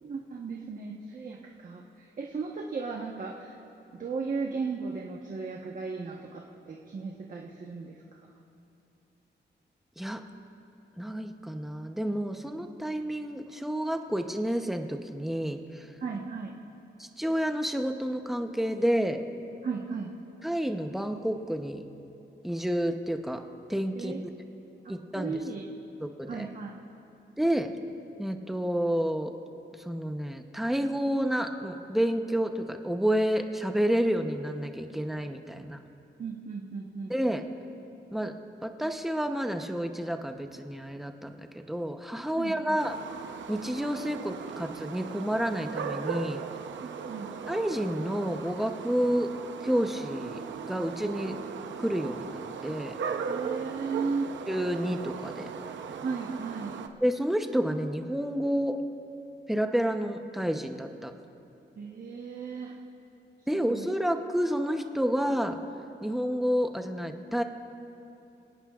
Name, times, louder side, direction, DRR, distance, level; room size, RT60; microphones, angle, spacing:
voice 1, 0.0-3.6 3.9-8.3 16.0-16.5 19.6-20.1 23.9-24.2 24.8-25.6 26.3-26.7 36.2-37.1 42.4-42.8 46.8-47.3 53.2-54.3 56.0-56.8 61.7-62.7 63.7-63.9, right 4 dB, 45° right, -1 dB, 1.1 m, -36 dB
voice 2, 11.0-15.9 17.0-19.2 20.4-21.8 22.4-23.4 23.7-24.2 24.9-25.3 26.0-26.5 27.4-27.7 28.2-29.3 29.8-35.8 37.1-37.4 38.1-38.3 38.6-42.9 43.5-46.4 47.5-49.3 49.6-50.4 50.7-51.4 51.8-52.9 54.5-55.5 57.0-58.8 59.5-61.1 63.5-65.6 66.0-67.4, equal, ahead, 5 dB, 0.8 m, -29 dB
sound 1, 42.8-56.9, right 6 dB, 90° right, 0.7 m, -38 dB
27.0 x 18.0 x 2.4 m, 2.8 s
wide cardioid pair, 155°, 19 cm